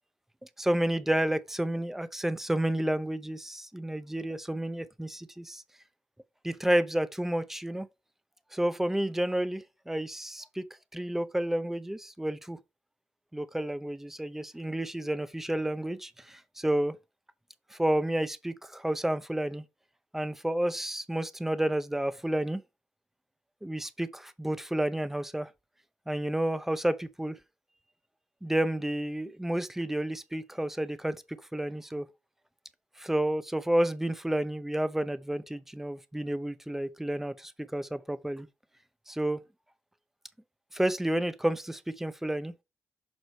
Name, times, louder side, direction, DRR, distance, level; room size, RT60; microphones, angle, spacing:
voice 1, 0.6-5.6 6.4-7.9 8.5-10.7 10.9-12.6 13.3-17.0 17.7-19.6 20.1-22.6 23.6-25.5 26.1-27.4 28.4-31.2 31.5-32.1 33.0-38.5 39.1-39.4 40.7-42.5, right 1 dB, 5° right, 0.7 m, -30 dB
6.3 x 4.9 x 4.1 m
cardioid pair, 95°, 6 cm